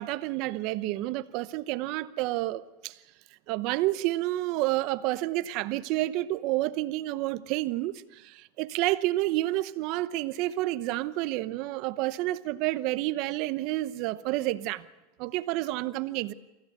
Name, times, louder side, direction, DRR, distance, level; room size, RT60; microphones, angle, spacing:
voice 1, 0.0-3.0 3.5-14.9 15.2-16.3, right 17 dB, 50° right, 0.9 m, -29 dB
24.5 x 15.5 x 8.1 m
supercardioid pair, 135°, 0 cm